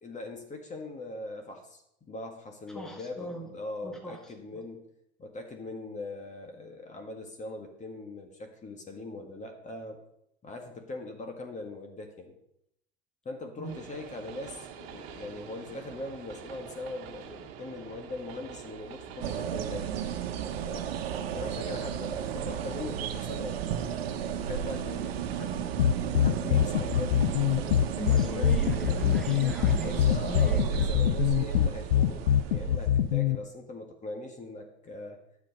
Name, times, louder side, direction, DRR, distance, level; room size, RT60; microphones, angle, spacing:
voice 1, 0.0-1.8 2.1-4.8 5.2-10.0 10.4-12.4 13.3-19.9 20.6-23.6 24.2-25.7 26.1-28.8 29.8-35.2, left 2 dB, 25° left, 4 dB, 1.8 m, -41 dB
voice 2, 2.7-3.5 3.8-4.6 13.6-13.7 28.0-30.9, equal, ahead, 2 dB, 1.6 m, -40 dB
Train, 13.6-32.8, right 8 dB, 50° right, 1.5 m, -47 dB
sound 1, 19.2-33.2, right 8 dB, 70° right, 1.2 m, -33 dB
sound 2, 25.8-33.4, left 10 dB, 70° left, 0.7 m, -24 dB
10.5 x 7.3 x 5.3 m, 0.79 s
hypercardioid pair, 90°, 31 cm